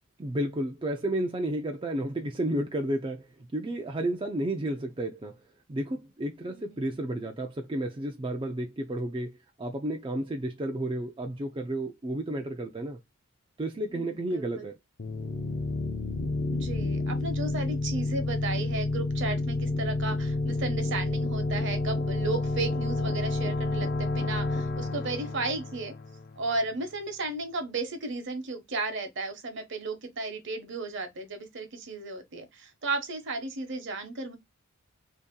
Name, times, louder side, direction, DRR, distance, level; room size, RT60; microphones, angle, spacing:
voice 1, 0.2-5.4 5.7-13.0 13.6-14.7, right 1 dB, 25° right, 0.4 m, -32 dB
voice 2, 6.5-7.0 13.9-14.7 16.5-25.9 26.4-34.4, right 3 dB, 60° right, 1.0 m, -34 dB
sound 1, 15.0-26.6, left 2 dB, 45° left, 0.6 m, -30 dB
3.0 x 2.8 x 3.6 m
head